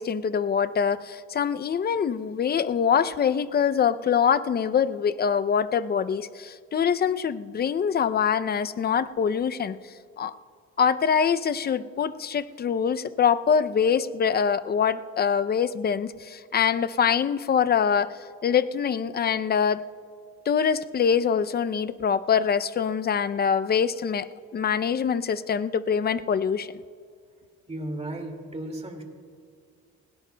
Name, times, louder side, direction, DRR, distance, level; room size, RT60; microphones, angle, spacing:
voice 1, 0.0-9.8 10.2-10.3 10.8-19.8 20.5-24.3 24.5-26.7, left 7 dB, 35° left, 14 dB, 0.5 m, -24 dB
voice 2, 27.7-29.0, right 1 dB, 20° right, 3 dB, 2.1 m, -34 dB
20.0 x 17.5 x 2.2 m, 2.2 s
cardioid pair, 90°, 30 cm